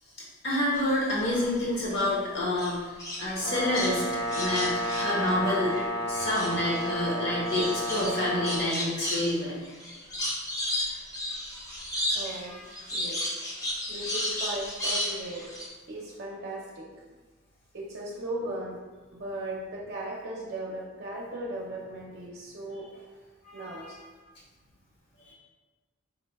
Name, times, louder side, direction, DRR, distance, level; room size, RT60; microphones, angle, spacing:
voice 1, 0.4-2.9 3.2-4.0 4.3-5.7 6.1-9.6 12.5-12.6 23.4-23.9 25.2-25.3, left 1 dB, 60° left, -5 dB, 0.9 m, -28 dB
sound 1, 0.8-2.1 2.6-5.9 6.1-15.7, left 1 dB, 20° left, 0.6 m, -34 dB
Brass instrument, 3.4-8.7, equal, 85° left, 0.9 m, -32 dB
voice 2, 12.1-12.6 12.9-13.3 13.9-15.5 15.9-16.9 17.7-18.8 19.1-23.2 23.5-24.0, right 1 dB, 55° right, -4 dB, 0.6 m, -37 dB
3.9 x 2.2 x 4.0 m, 1.4 s
head